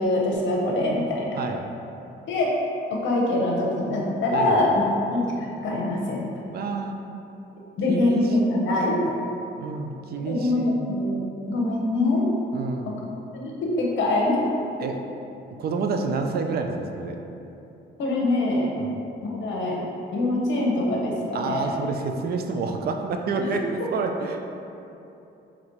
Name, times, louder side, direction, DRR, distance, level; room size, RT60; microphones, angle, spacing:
voice 1, 0.0-1.4 2.3-2.5 2.9-4.8 5.1-6.3 7.8-9.0 10.3-11.2 11.5-12.3 12.9-13.0 13.3-14.4 18.0-18.7 19.2-19.8 20.1-21.8 23.5-23.6, left 2 dB, 75° left, -2 dB, 0.8 m, -24 dB
voice 2, 6.5-7.0 7.9-8.8 9.6-10.9 12.5-12.9 14.8-15.0 15.6-17.2 18.8-18.9 21.3-24.4, right 4 dB, 50° right, 4 dB, 0.4 m, -29 dB
4.1 x 2.9 x 3.0 m, 2.9 s
cardioid pair, 90°, 20 cm